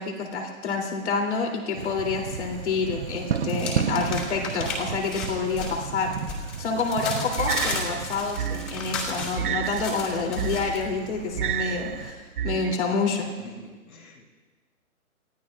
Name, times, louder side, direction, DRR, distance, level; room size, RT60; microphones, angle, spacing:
voice 1, 0.0-6.1 6.6-13.3, left 4 dB, 50° left, 1 dB, 3.2 m, -28 dB
sound 1, 1.7-12.1, right 7 dB, 50° right, 1.0 m, -34 dB
sound 2, 1.8-2.7 2.9-10.8, left 3 dB, 20° left, 2.8 m, -35 dB
sound 3, 7.4-12.8, right 10 dB, 85° right, 0.8 m, -31 dB
voice 2, 12.7-14.3, left 1 dB, 75° left, 2 dB, 5.4 m, -47 dB
29.5 x 16.0 x 2.5 m, 1.3 s
hypercardioid pair, 170°, 43 cm